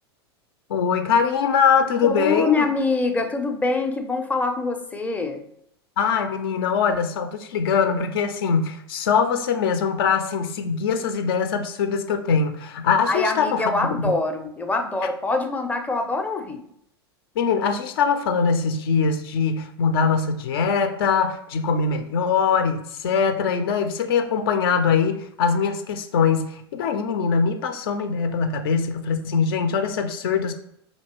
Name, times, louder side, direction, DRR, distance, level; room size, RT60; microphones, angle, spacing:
voice 1, 0.7-2.7 6.0-14.1 17.4-30.5, left 6 dB, 60° left, 7 dB, 0.5 m, -22 dB
voice 2, 2.0-5.4 13.1-16.6, left 3 dB, 10° left, 4 dB, 0.5 m, -24 dB
5.2 x 2.8 x 2.9 m, 0.71 s
figure-of-eight pair, 90°, 14 cm